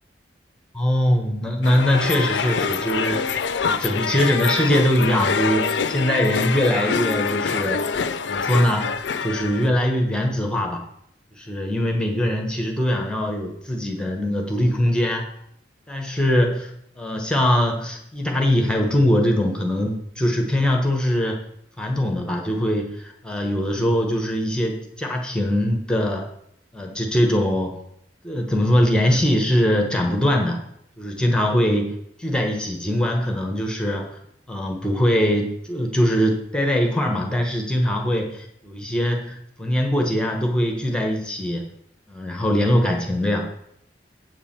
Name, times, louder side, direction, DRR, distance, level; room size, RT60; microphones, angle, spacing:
voice 1, 0.7-7.9 8.2-8.9 9.2-10.8 11.4-15.3 15.9-21.4 21.8-26.3 26.7-27.8 28.2-30.6 31.0-34.2 34.5-41.6 42.1-43.4, equal, 5° left, 2 dB, 1.0 m, -22 dB
sound 1, 1.6-9.7, left 5 dB, 70° left, 0.5 m, -25 dB
7.9 x 4.8 x 7.2 m, 0.74 s
head